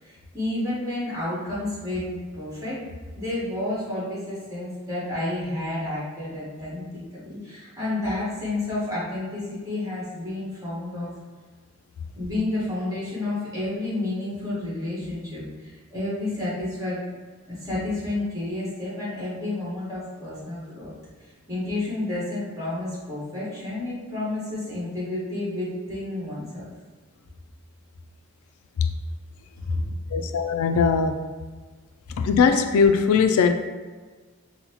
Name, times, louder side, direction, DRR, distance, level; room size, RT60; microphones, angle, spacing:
voice 1, 0.0-2.8 3.1-6.8 7.1-11.1 12.2-17.0 17.5-20.9 21.5-26.6 29.6-29.8, left 2 dB, 15° right, -9 dB, 1.3 m, -30 dB
voice 2, 30.1-31.2 32.2-33.5, left 5 dB, 90° left, 8 dB, 0.3 m, -20 dB
5.4 x 2.1 x 2.9 m, 1.4 s
head